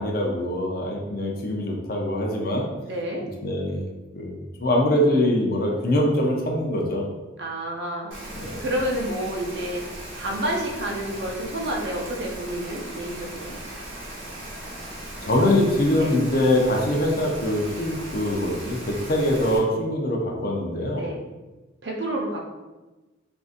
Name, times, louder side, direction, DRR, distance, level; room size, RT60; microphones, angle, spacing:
voice 1, 0.0-2.7 3.4-3.9 4.1-7.0 8.3-8.6 15.2-21.1, left 1 dB, 45° left, -1 dB, 0.5 m, -23 dB
voice 2, 2.8-3.2 7.4-8.2 8.6-9.8 10.2-13.6 16.0-16.2 20.9-21.2 21.8-22.4, right 1 dB, 55° right, 0 dB, 0.6 m, -29 dB
Rain, 8.1-19.6, right 1 dB, 75° right, 0.9 m, -38 dB
3.7 x 2.6 x 2.5 m, 1.1 s
head